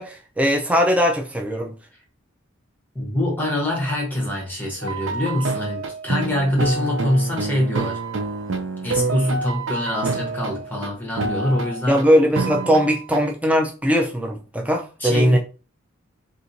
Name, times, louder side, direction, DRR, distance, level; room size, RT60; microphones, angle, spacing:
voice 1, 0.0-1.8 11.9-15.4, equal, 5° right, 0.5 m, -20 dB
voice 2, 2.9-8.0 8.8-12.0 15.0-15.4, left 1 dB, 10° left, 0.9 m, -24 dB
sound 1, 4.8-10.9 11.2-12.0 12.4-13.2, right 3 dB, 65° right, 0.5 m, -27 dB
4.3 x 2.5 x 2.6 m
head